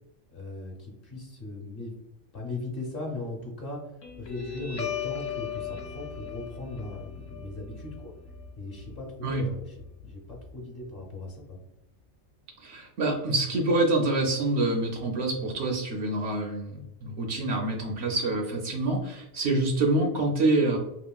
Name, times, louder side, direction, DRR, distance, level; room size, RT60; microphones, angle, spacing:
voice 1, 0.3-2.0 2.3-3.8 4.2-8.1 8.6-11.6, left 2 dB, 50° left, -1 dB, 0.9 m, -38 dB
Guitar, 4.0-11.0, left 8 dB, 80° left, 1.0 m, -38 dB
voice 2, 12.6-20.8, right 2 dB, 65° right, 1 dB, 0.7 m, -26 dB
2.9 x 2.8 x 2.2 m, 0.87 s
omnidirectional pair, 1.3 m